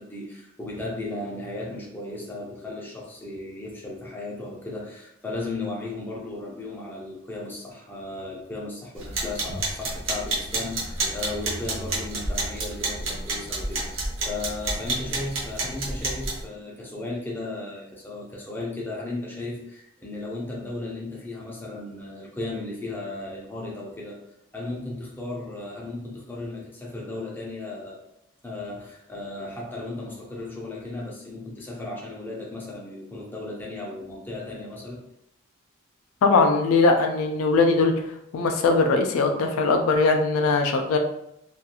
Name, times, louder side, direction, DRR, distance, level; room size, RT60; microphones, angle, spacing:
voice 1, 0.0-24.2 24.5-28.0 28.4-35.0, left 2 dB, 10° left, -3 dB, 0.4 m, -35 dB
sound 1, 9.0-16.4, right 2 dB, 60° right, 0.7 m, -30 dB
voice 2, 36.2-37.9 38.3-41.0, left 3 dB, 75° left, 4 dB, 0.3 m, -20 dB
2.3 x 2.3 x 2.8 m, 0.78 s
head